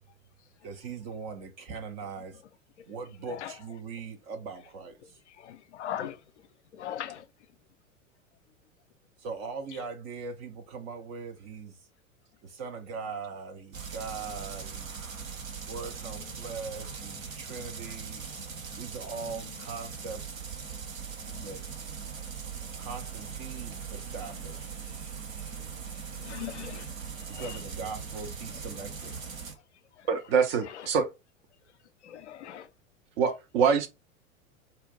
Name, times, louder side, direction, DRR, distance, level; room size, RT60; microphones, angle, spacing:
voice 1, 0.6-2.4 2.9-5.2 9.2-11.8 12.4-15.0 15.7-18.2 18.8-20.3 21.4-21.6 22.8-24.7 27.3-29.1, right 5 dB, 25° right, 0.5 m, -40 dB
voice 2, 5.5-6.2 6.8-7.2 21.3-21.5 26.2-26.8 32.1-32.6, left 11 dB, 55° left, 0.6 m, -38 dB
sound 1, 13.7-29.5, right 6 dB, 70° right, 1.1 m, -40 dB
voice 3, 30.1-31.1 33.2-33.9, right 6 dB, 45° right, 0.8 m, -24 dB
4.2 x 2.5 x 3.9 m
figure-of-eight pair, 95°, 41 cm